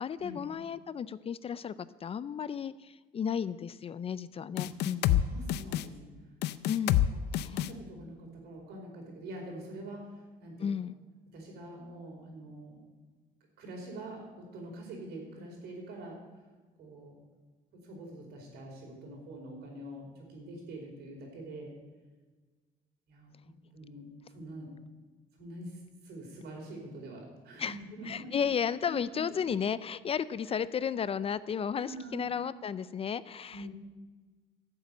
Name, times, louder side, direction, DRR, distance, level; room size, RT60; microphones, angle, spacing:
voice 1, 0.0-1.7 2.0-5.2 6.7-7.0 7.4-7.5 10.6-10.9 27.6-27.8 28.1-33.7, left 7 dB, 35° left, 17 dB, 0.4 m, -33 dB
sound 1, 4.6-5.2 5.5-5.8 6.4-7.1 7.3-7.7, left 13 dB, 80° left, 0.6 m, -27 dB
voice 2, 4.6-6.1 7.3-10.7 11.3-12.8 13.6-14.2 14.5-16.2 16.8-17.2 17.8-21.7 23.1-24.7 25.4-28.5 28.8-29.2 30.5-30.6 31.8-32.3 33.5-33.7, right 1 dB, 75° right, 0 dB, 4.8 m, -45 dB
12.5 x 7.3 x 8.7 m, 1.3 s
cardioid pair, 110°, 17 cm